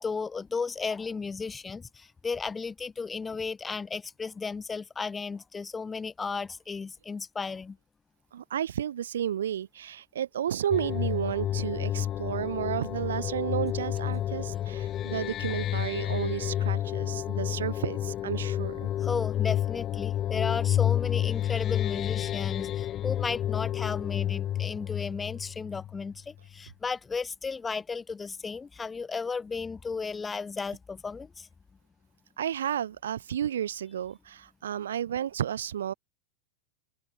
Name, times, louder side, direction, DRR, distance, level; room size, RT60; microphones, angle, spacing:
voice 1, 0.0-7.8 19.0-31.5, left 5 dB, 15° left, 6.6 m, -34 dB
voice 2, 8.3-18.9 32.4-35.9, right 10 dB, 65° right, 2.2 m, -32 dB
sound 1, 10.7-26.2, left 12 dB, 30° left, 1.4 m, -30 dB
open air
figure-of-eight pair, 90°, 0 cm